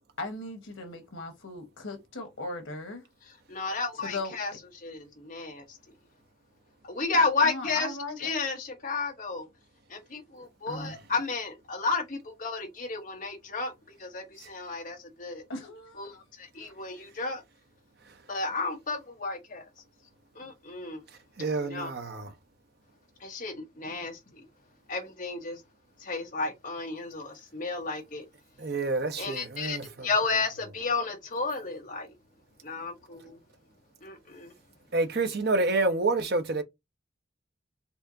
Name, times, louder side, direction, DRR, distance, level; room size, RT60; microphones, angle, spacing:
voice 1, 0.2-3.0 4.0-4.3 7.4-8.3 10.7-11.0 15.5-16.2 16.6-16.7, left 2 dB, 90° left, 1.3 m, -38 dB
voice 2, 3.5-5.8 6.9-9.5 9.9-13.7 14.0-15.4 16.0-17.4 18.3-19.6 20.3-21.0 21.6-21.9 23.2-24.4 24.9-25.6 26.0-28.2 29.2-29.8 30.0-32.1 32.6-33.4 34.0-34.5, left 4 dB, 45° left, 1.1 m, -32 dB
voice 3, 21.4-22.3 28.6-30.1 34.9-36.6, right 3 dB, 55° right, 0.8 m, -28 dB
4.4 x 2.8 x 2.7 m
head